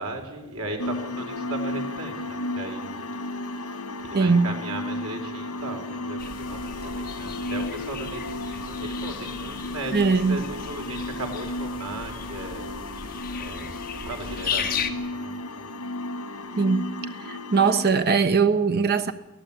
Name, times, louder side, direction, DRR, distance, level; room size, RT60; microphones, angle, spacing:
voice 1, 0.0-3.1 3.6-12.7 13.4-15.4 15.6-15.7, right 2 dB, 80° right, 4.6 m, -37 dB
sound 1, 0.8-17.9, left 1 dB, 75° left, 2.3 m, -34 dB
voice 2, 4.1-4.5 9.9-10.4 16.5-16.9 17.3-19.1, right 4 dB, 45° right, 1.2 m, -21 dB
sound 2, 6.2-14.9, left 6 dB, 40° left, 1.7 m, -35 dB
23.5 x 17.0 x 8.8 m
head